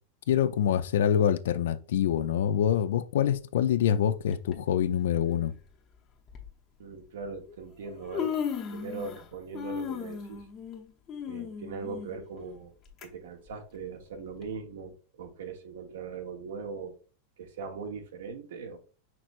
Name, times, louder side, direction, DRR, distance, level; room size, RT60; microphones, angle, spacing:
voice 1, 0.3-5.5, left 9 dB, 80° left, 0.4 m, -25 dB
Human voice, 4.3-4.5 5.6-5.7 6.3-6.5 7.5-7.6 7.9-9.3 9.5-13.1 13.5-13.6 14.4-14.5, left 7 dB, 40° left, 0.8 m, -36 dB
voice 2, 6.8-8.3 8.7-10.5 11.3-12.7 13.0-16.9 17.4-18.8, right 5 dB, 80° right, 1.1 m, -40 dB
5.9 x 3.1 x 2.5 m
hypercardioid pair, 115°, 0 cm